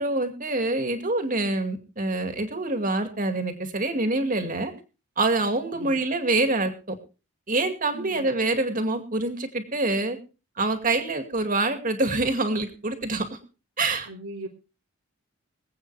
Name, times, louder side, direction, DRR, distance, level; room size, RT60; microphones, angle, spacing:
voice 1, 0.0-4.7 5.2-6.7 7.5-10.2 10.6-13.4 13.8-14.1, right 2 dB, 35° right, 6 dB, 2.3 m, -26 dB
voice 2, 7.9-8.3 14.1-14.5, right 2 dB, 90° right, -4 dB, 2.3 m, -38 dB
25.0 x 8.7 x 3.4 m, 0.33 s
head